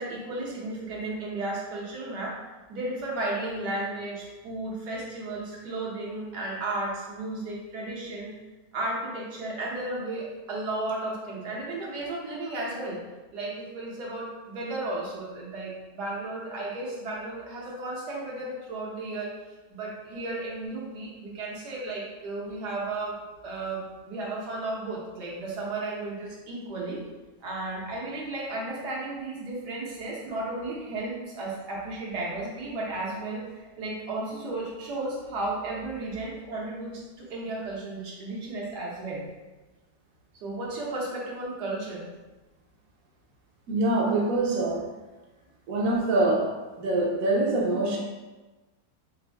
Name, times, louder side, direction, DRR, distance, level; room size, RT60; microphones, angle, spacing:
voice 1, 0.0-2.4 2.7-8.3 8.7-13.0 13.3-19.3 19.7-23.2 23.4-27.0 27.4-39.2 40.4-42.1, right 2 dB, 80° right, -4 dB, 1.6 m, -34 dB
voice 2, 43.7-44.9 45.7-46.5 46.8-48.0, right 2 dB, 65° right, -2 dB, 1.1 m, -24 dB
5.1 x 2.6 x 3.3 m, 1.2 s
omnidirectional pair, 1.7 m